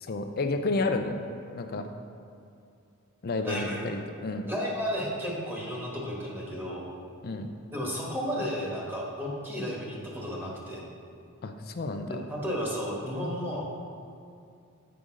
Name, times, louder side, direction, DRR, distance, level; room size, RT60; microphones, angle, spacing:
voice 1, 0.0-1.9 3.2-4.5 7.2-7.5 11.4-12.2, left 3 dB, 45° left, 6 dB, 0.5 m, -31 dB
voice 2, 3.4-3.9 4.5-6.9 7.7-10.8 12.1-13.7, equal, 10° right, -4 dB, 1.3 m, -33 dB
7.9 x 5.1 x 3.7 m, 2.5 s
head